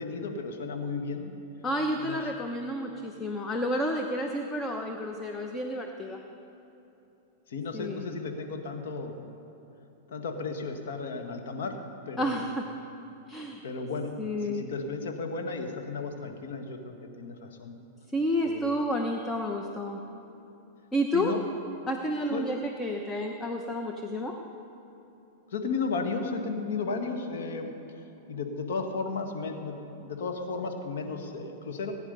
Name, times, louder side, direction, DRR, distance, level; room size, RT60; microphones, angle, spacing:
voice 1, 0.0-1.3 1.9-2.2 7.5-9.2 10.1-11.8 12.1-12.5 13.6-14.1 14.4-17.7 18.4-18.7 21.1-21.4 22.3-22.4 25.5-27.7 28.3-31.9, left 4 dB, 75° left, 4 dB, 1.8 m, -34 dB
voice 2, 1.6-6.2 7.7-8.0 12.2-12.7 13.3-13.6 14.2-14.6 18.1-20.0 20.9-21.3 21.9-24.4, equal, 15° left, 3 dB, 1.0 m, -30 dB
19.5 x 9.6 x 5.4 m, 3.0 s
hypercardioid pair, 120°, 0 cm